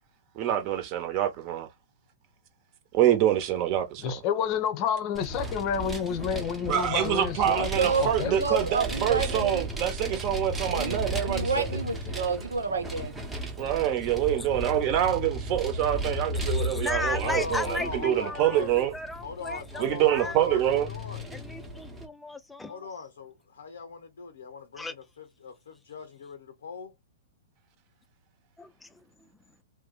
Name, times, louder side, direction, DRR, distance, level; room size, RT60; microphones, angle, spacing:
voice 1, 0.4-1.7 2.9-4.1 6.6-11.5 13.6-18.9 19.8-20.9, right 11 dB, 40° right, 1.0 m, -26 dB
voice 2, 4.0-7.7 7.9-8.4, left 8 dB, 40° left, 0.7 m, -29 dB
Vehicle, 5.1-22.1, equal, 10° right, 0.9 m, -35 dB
voice 3, 7.5-10.2 10.7-13.2, right 4 dB, 85° right, 1.1 m, -30 dB
voice 4, 16.5-20.4 21.3-22.9 24.8-24.9 28.6-29.0, left 2 dB, 10° left, 0.4 m, -36 dB
voice 5, 17.2-18.7 19.2-21.3 22.7-26.9, left 4 dB, 75° left, 0.7 m, -40 dB
2.7 x 2.2 x 3.9 m
hypercardioid pair, 115°, 0 cm